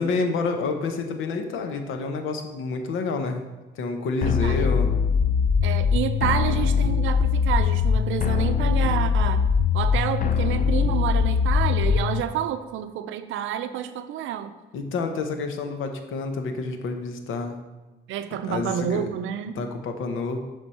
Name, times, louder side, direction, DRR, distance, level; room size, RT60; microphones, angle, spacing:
voice 1, 0.0-3.4 3.7-4.9 14.7-17.6 18.5-19.1 19.5-20.4, left 4 dB, 80° left, 6 dB, 0.9 m, -28 dB
sound 1, 4.2-12.2, left 6 dB, 45° left, 0.4 m, -22 dB
voice 2, 4.3-4.8 5.6-9.4 9.7-14.5 18.1-19.6, right 10 dB, 80° right, 10 dB, 0.5 m, -29 dB
7.2 x 3.4 x 5.5 m, 1.2 s
cardioid pair, 90°, 20 cm